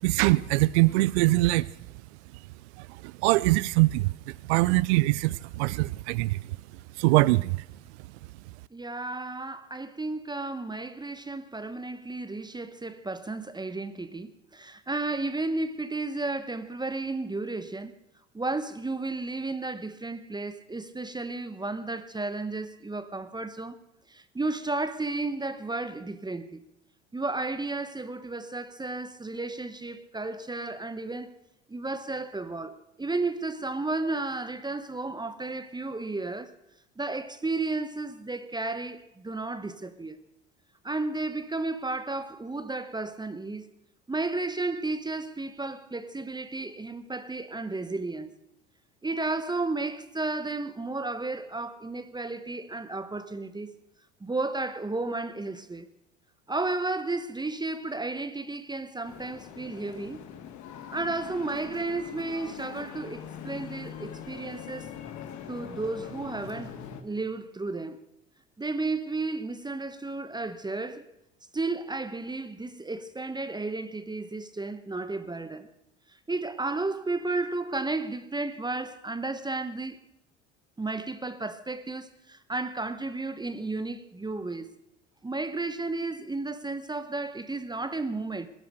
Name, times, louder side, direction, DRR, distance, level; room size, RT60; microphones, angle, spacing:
voice 1, 0.0-1.7 2.8-6.6 7.0-7.6, right 20 dB, 70° right, 0.5 m, -23 dB
voice 2, 8.7-17.9 18.3-23.8 24.1-26.6 27.1-31.4 31.7-36.5 37.0-40.2 40.8-43.7 44.1-48.3 49.0-53.7 54.2-55.9 56.5-60.2 60.9-64.9 65.5-68.0 68.6-71.1 71.5-75.7 76.3-80.0 80.8-84.7 85.2-88.5, right 3 dB, 10° right, 1.0 m, -33 dB
sound 1, 59.0-67.0, left 8 dB, 55° left, 2.0 m, -42 dB
20.0 x 10.5 x 6.5 m
hypercardioid pair, 70°, 35 cm